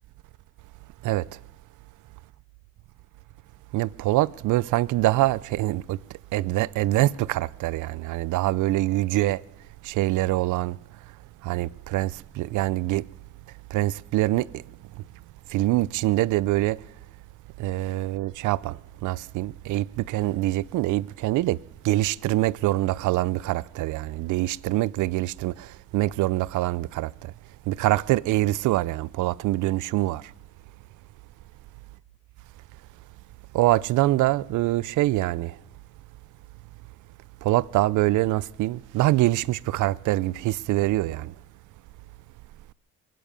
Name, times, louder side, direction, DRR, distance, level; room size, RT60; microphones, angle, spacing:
voice 1, 3.7-6.0 6.3-9.4 9.8-10.8 11.4-13.0 13.7-14.5 15.5-16.8 17.6-18.8 19.0-21.6 21.8-25.7 25.9-27.3 27.7-30.2 33.5-35.5 37.4-41.3, right 16 dB, 80° right, 0.5 m, -24 dB
22.5 x 9.4 x 6.8 m
cardioid pair, 90°, 30 cm